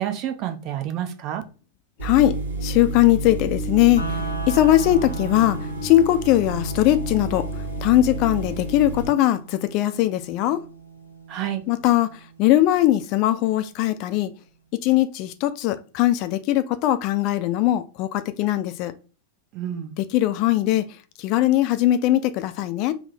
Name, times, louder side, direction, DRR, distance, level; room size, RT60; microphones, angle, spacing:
voice 1, 0.0-1.4 11.3-11.6 19.5-19.9, right 11 dB, 40° right, 0.6 m, -29 dB
voice 2, 2.0-2.4 2.6-7.5 7.8-10.6 11.7-14.3 14.8-18.9 20.0-20.9 21.2-22.9, left 14 dB, 40° left, 0.3 m, -20 dB
sound 1, 2.0-9.1, right 2 dB, 80° right, 1.0 m, -30 dB
sound 2, 4.0-14.0, right 3 dB, 80° left, 0.6 m, -38 dB
3.6 x 2.0 x 4.0 m
figure-of-eight pair, 90°, 0 cm